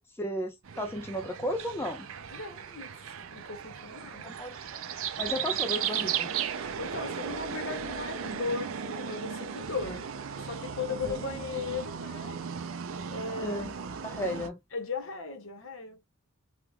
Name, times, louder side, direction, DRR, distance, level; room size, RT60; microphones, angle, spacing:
voice 1, 0.2-2.1 4.2-4.8 5.2-6.3 11.0-11.3 13.4-13.7 14.0-14.6, equal, 10° left, 0.4 m, -34 dB
sound 1, 0.6-14.5, right 7 dB, 65° right, 0.5 m, -36 dB
voice 2, 2.3-4.4 6.6-12.6 13.1-13.6 14.7-16.0, left 4 dB, 60° left, 1.1 m, -37 dB
3.6 x 2.3 x 2.8 m
head